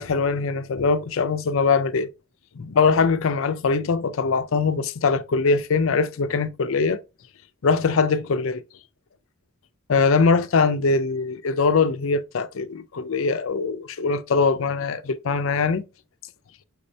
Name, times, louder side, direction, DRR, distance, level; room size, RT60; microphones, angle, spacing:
voice 1, 0.0-2.1 2.6-7.0 7.6-8.6 9.9-15.8, left 4 dB, 65° left, 0.5 m, -22 dB
5.9 x 2.7 x 3.2 m
head